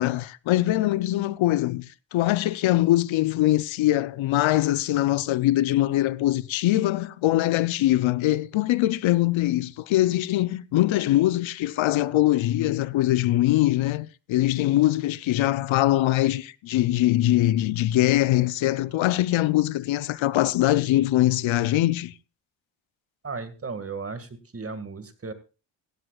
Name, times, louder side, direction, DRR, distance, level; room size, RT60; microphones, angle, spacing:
voice 1, 0.0-22.1, left 15 dB, 75° left, 0.7 m, -22 dB
voice 2, 23.2-25.3, right 4 dB, 30° right, 1.9 m, -35 dB
16.0 x 15.5 x 2.4 m
cardioid pair, 100°, 48 cm